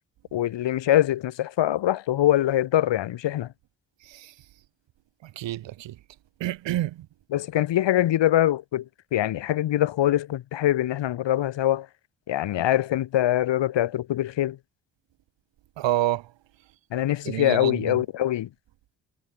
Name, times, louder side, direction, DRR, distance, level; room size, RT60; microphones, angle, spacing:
voice 1, 0.3-3.5 7.3-11.9 12.3-14.6 16.9-18.5, left 13 dB, 75° left, 4.5 m, -23 dB
voice 2, 4.0-4.3 5.2-6.0 6.4-7.1 15.8-16.3 17.3-18.0, right 14 dB, 80° right, 3.8 m, -28 dB
supercardioid pair, 50°, 44 cm